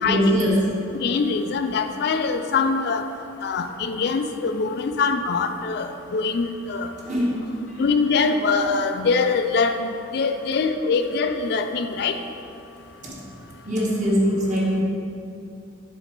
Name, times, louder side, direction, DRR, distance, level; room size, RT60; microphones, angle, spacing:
voice 1, 0.0-0.7 7.0-7.4 13.0-13.2 13.6-14.8, equal, 40° right, -5 dB, 1.4 m, -22 dB
voice 2, 1.0-3.1 3.4-6.9 7.8-12.2, left 4 dB, 60° left, 7 dB, 0.3 m, -23 dB
7.0 x 4.0 x 4.5 m, 2.6 s
head